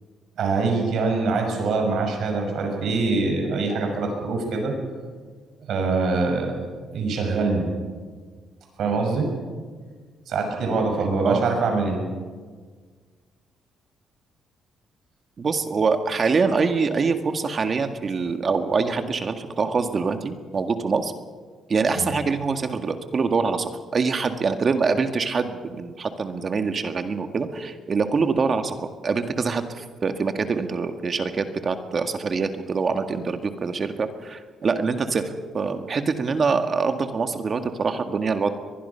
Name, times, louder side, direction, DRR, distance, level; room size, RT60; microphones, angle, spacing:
voice 1, 0.4-4.7 5.7-6.6 6.9-7.7 8.8-9.3 10.3-12.0 21.9-22.2, right 3 dB, 70° right, 3 dB, 6.2 m, -24 dB
voice 2, 15.4-21.1 21.7-28.8 29.0-38.5, right 4 dB, 45° right, 7 dB, 1.8 m, -24 dB
22.5 x 21.0 x 5.8 m, 1.5 s
cardioid pair, 90°, 0 cm